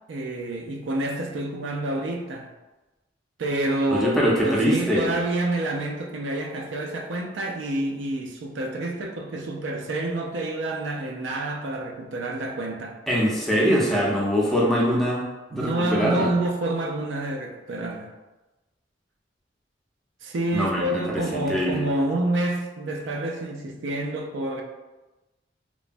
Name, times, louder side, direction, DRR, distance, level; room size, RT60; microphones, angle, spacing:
voice 1, 0.1-2.5 3.4-13.0 15.5-18.1 20.2-24.6, right 1 dB, 85° right, 2 dB, 0.4 m, -28 dB
voice 2, 3.9-5.1 13.1-16.3 20.5-21.8, equal, ahead, -5 dB, 0.5 m, -23 dB
3.0 x 2.1 x 2.5 m, 1.1 s
head